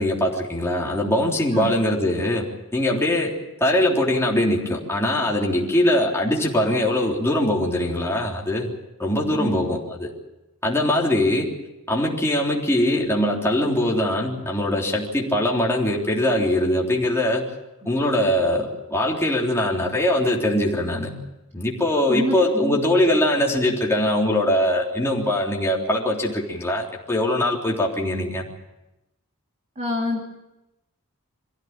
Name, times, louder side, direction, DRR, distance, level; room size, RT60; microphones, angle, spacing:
voice 1, 0.0-2.5 2.7-3.3 3.6-8.7 9.0-10.1 10.6-11.5 11.9-17.4 17.9-21.2 21.5-28.4, left 1 dB, 10° left, -3 dB, 3.5 m, -22 dB
voice 2, 9.3-9.6 22.1-22.8 23.1-23.2 29.8-30.3, equal, 30° right, 0 dB, 2.6 m, -27 dB
24.0 x 15.5 x 8.9 m, 0.95 s
head